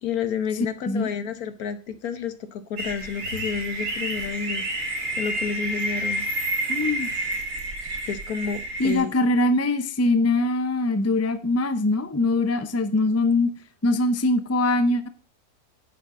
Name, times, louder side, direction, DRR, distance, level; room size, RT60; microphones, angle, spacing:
voice 1, 0.0-6.2 8.0-9.1, left 7 dB, 70° left, 11 dB, 1.5 m, -30 dB
sound 1, 2.8-9.0, right 1 dB, 85° right, 3.1 m, -29 dB
voice 2, 6.7-7.1 8.8-13.5 13.8-15.1, left 2 dB, 20° left, 11 dB, 0.4 m, -22 dB
11.0 x 8.6 x 3.8 m, 0.36 s
omnidirectional pair, 1.7 m